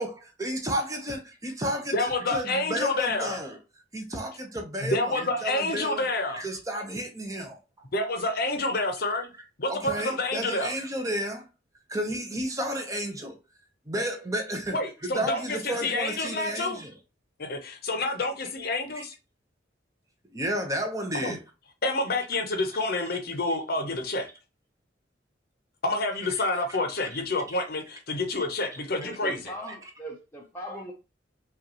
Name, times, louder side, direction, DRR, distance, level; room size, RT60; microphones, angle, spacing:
voice 1, 0.0-2.0 2.3-3.6 3.9-7.6 9.7-11.4 11.9-13.4 13.9-14.8 15.0-16.9 19.0-19.1 20.3-21.4 27.0-27.2 28.1-28.2, equal, 20° right, 0.8 m, -32 dB
voice 2, 1.9-3.4 4.8-6.4 7.9-9.3 9.6-10.7 14.7-16.8 17.4-19.1 21.2-21.3 21.8-24.3 25.8-29.5, left 2 dB, 55° left, 0.8 m, -28 dB
voice 3, 29.0-30.9, equal, 10° left, 0.6 m, -39 dB
5.2 x 2.5 x 2.9 m
head